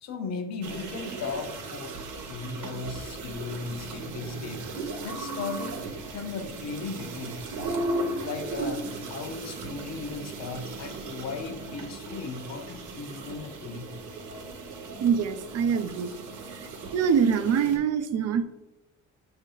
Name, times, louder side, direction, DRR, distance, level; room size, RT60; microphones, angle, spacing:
voice 1, 0.0-2.0 2.3-4.7 5.0-5.8 6.1-7.4 8.2-13.9, left 4 dB, 60° left, 7 dB, 0.6 m, -37 dB
sound 1, 0.6-17.8, right 2 dB, 80° right, 0.8 m, -37 dB
voice 2, 15.0-16.1 16.5-16.6 16.9-18.4, right 7 dB, 55° right, 10 dB, 0.4 m, -24 dB
5.3 x 2.6 x 3.8 m, 0.99 s
cardioid pair, 90°, 30 cm